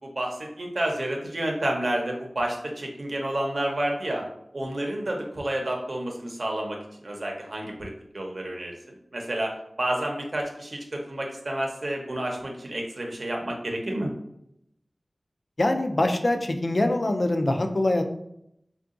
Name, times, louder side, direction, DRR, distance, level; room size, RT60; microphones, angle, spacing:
voice 1, 0.0-4.2 4.5-6.8 7.0-8.7 9.1-14.1, right 1 dB, 65° right, 0 dB, 0.7 m, -30 dB
voice 2, 15.6-18.0, left 1 dB, 55° left, 5 dB, 0.3 m, -24 dB
3.7 x 2.3 x 2.5 m, 0.77 s
wide cardioid pair, 65°, 0 cm